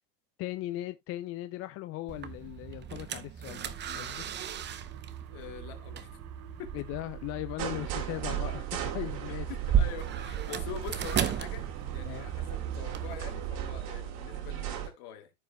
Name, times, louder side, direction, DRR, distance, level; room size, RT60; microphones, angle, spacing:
voice 1, 0.4-4.2 6.7-9.5 12.1-12.2, left 16 dB, 30° left, 0.4 m, -38 dB
sound 1, 2.1-13.2, right 9 dB, 20° right, 0.7 m, -35 dB
sound 2, 3.5-13.8, right 8 dB, 70° right, 2.0 m, -43 dB
voice 2, 3.9-4.2 5.3-6.2 6.6-6.7 9.3-11.7 11.9-15.3, left 9 dB, 50° left, 2.4 m, -44 dB
sound 3, 7.6-14.9, right 11 dB, 55° right, 2.7 m, -37 dB
14.5 x 5.1 x 2.2 m
supercardioid pair, 125°, 49 cm